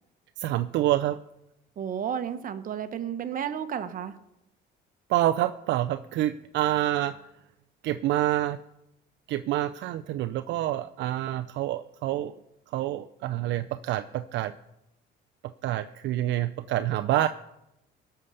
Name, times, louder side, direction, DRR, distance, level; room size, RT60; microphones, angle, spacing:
voice 1, 0.4-1.2 5.1-7.2 7.8-8.6 9.3-12.3 12.7-14.5 15.6-17.3, right 14 dB, 70° right, 9 dB, 0.5 m, -27 dB
voice 2, 1.8-4.2, right 8 dB, 45° right, 9 dB, 1.1 m, -32 dB
18.0 x 6.7 x 5.6 m, 0.87 s
cardioid pair, 115°, 20 cm